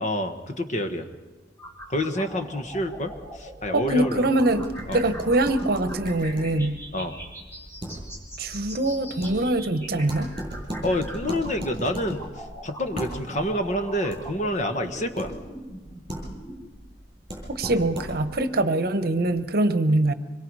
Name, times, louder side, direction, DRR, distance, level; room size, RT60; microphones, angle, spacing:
voice 1, 0.0-1.1 1.9-4.3 4.9-5.0 6.9-7.1 10.8-12.2 12.6-15.3, left 1 dB, 45° left, 7 dB, 1.4 m, -28 dB
sound 1, 1.6-16.6, right 1 dB, 15° left, 3.8 m, -42 dB
voice 2, 3.7-6.8 8.4-10.3 17.5-20.1, right 2 dB, 60° right, 11 dB, 1.0 m, -23 dB
sound 2, 4.4-18.5, right 1 dB, 25° right, 7.1 m, -38 dB
25.0 x 22.0 x 4.8 m, 1.2 s
head